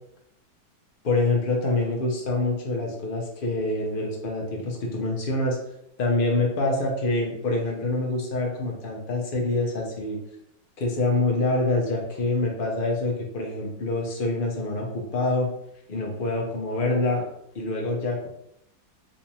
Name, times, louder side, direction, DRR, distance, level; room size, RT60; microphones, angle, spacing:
voice 1, 1.0-5.6 6.0-10.2 10.8-15.5 15.9-17.2 17.5-18.3, left 2 dB, 45° left, -1 dB, 0.7 m, -26 dB
3.9 x 3.1 x 2.7 m, 0.77 s
omnidirectional pair, 1.9 m